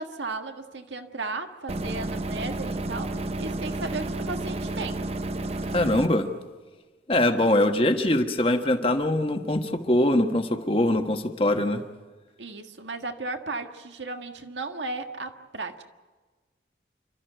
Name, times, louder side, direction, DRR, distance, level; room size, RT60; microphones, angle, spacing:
voice 1, 0.0-5.1 12.4-15.8, right 3 dB, 85° right, 6 dB, 1.6 m, -35 dB
sound 1, 1.7-6.1, right 2 dB, 35° right, 0.7 m, -31 dB
voice 2, 5.7-6.3 7.1-11.8, left 1 dB, 30° left, 6 dB, 1.3 m, -23 dB
28.5 x 13.0 x 9.2 m, 1.3 s
head